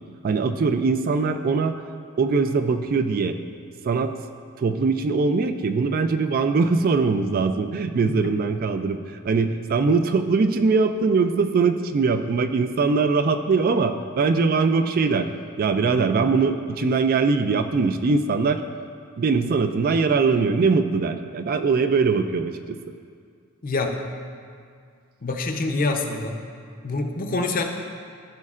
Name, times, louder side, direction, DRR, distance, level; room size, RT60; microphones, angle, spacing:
voice 1, 0.2-1.8 2.2-3.4 3.8-4.1 4.6-9.0 9.2-15.3 15.6-18.6 19.2-22.8, right 4 dB, 40° right, 8 dB, 0.3 m, -21 dB
voice 2, 23.6-24.0 25.2-26.4 26.8-27.6, left 3 dB, 40° left, 4 dB, 0.6 m, -26 dB
15.0 x 5.4 x 2.4 m, 2.2 s
head